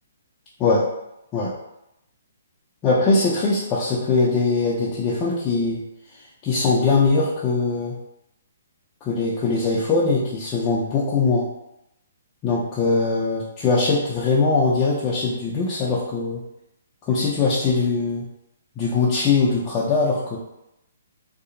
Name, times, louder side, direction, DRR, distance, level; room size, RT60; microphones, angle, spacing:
voice 1, 2.8-5.8 6.4-7.9 9.0-11.4 12.4-16.4 17.1-18.2 18.8-20.4, left 4 dB, 20° left, -6 dB, 0.4 m, -21 dB
2.7 x 2.0 x 2.5 m, 0.85 s
hypercardioid pair, 155°, 0 cm